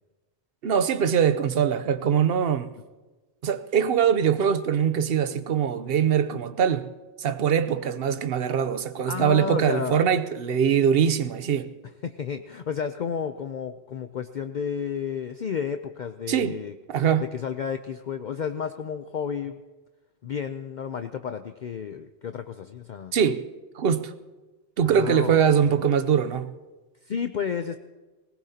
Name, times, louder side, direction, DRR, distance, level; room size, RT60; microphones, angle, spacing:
voice 1, 0.6-2.7 3.4-6.9 7.2-11.7 16.3-16.6 16.9-17.2 23.1-23.4 23.8-24.1 24.8-26.5, right 8 dB, 65° right, 0.9 m, -22 dB
voice 2, 9.1-10.0 12.0-16.8 17.2-19.6 20.2-23.1 24.8-25.8 27.0-27.8, left 7 dB, 55° left, 0.6 m, -32 dB
20.0 x 19.0 x 2.8 m
omnidirectional pair, 1.1 m